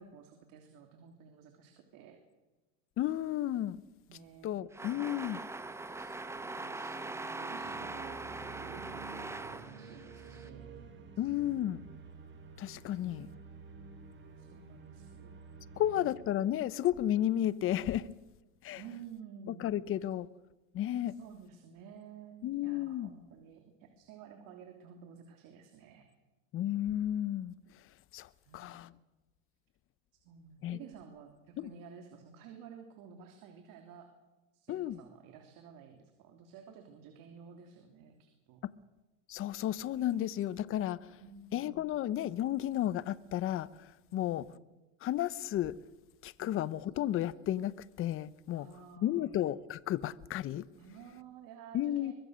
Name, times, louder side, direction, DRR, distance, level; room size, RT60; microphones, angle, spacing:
voice 1, 0.0-2.2 4.1-4.6 6.0-10.7 11.1-11.3 13.0-13.4 14.3-15.3 15.7-16.1 18.7-19.9 21.1-26.1 28.4-28.7 30.2-34.1 34.5-38.6 41.2-42.0 44.1-44.6 46.4-46.7 48.5-49.4 50.8-52.1, right 6 dB, 55° right, 3.1 m, -53 dB
voice 2, 3.0-3.8 4.4-5.4 11.2-11.9 12.6-13.3 15.8-18.1 18.6-18.8 19.6-20.3 20.7-21.2 22.4-23.1 26.5-27.5 28.1-28.9 30.6-30.8 31.6-31.7 34.7-35.0 39.3-41.2 41.5-44.4 45.0-45.7 46.2-47.7 48.0-48.7 49.0-50.6 51.7-52.1, left 12 dB, 35° left, 0.9 m, -33 dB
sound 1, 4.7-10.5, right 2 dB, 5° right, 0.9 m, -42 dB
sound 2, 7.6-17.6, right 5 dB, 30° right, 4.0 m, -51 dB
23.5 x 21.5 x 6.4 m
supercardioid pair, 130°, 39 cm